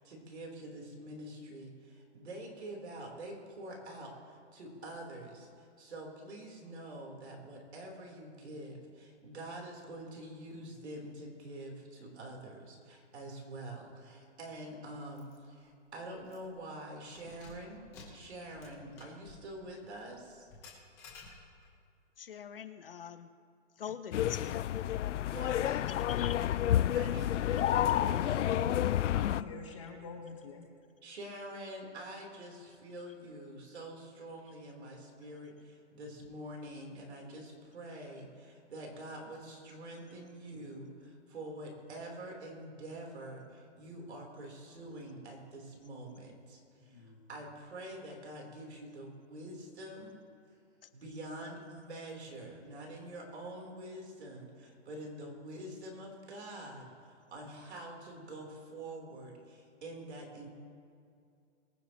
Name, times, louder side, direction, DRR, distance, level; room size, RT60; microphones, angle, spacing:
voice 1, 0.0-20.5 25.3-25.8 26.9-28.9 31.0-50.2 50.9-60.5, right 1 dB, 65° right, 0 dB, 3.9 m, -46 dB
Keys jangling, 15.2-15.4 15.7-15.8 16.2-16.6 17.0-21.8, left 4 dB, 5° left, 1.0 m, -55 dB
voice 2, 22.2-23.3 23.8-24.7 25.9-26.3, left 8 dB, 50° left, 11 dB, 0.9 m, -43 dB
sound 1, 24.1-29.4, left 11 dB, 85° left, 0.5 m, -30 dB
voice 3, 29.1-30.6 46.8-47.3, left 5 dB, 25° left, 2 dB, 1.3 m, -45 dB
23.5 x 10.0 x 3.1 m, 2.4 s
hypercardioid pair, 180°, 35 cm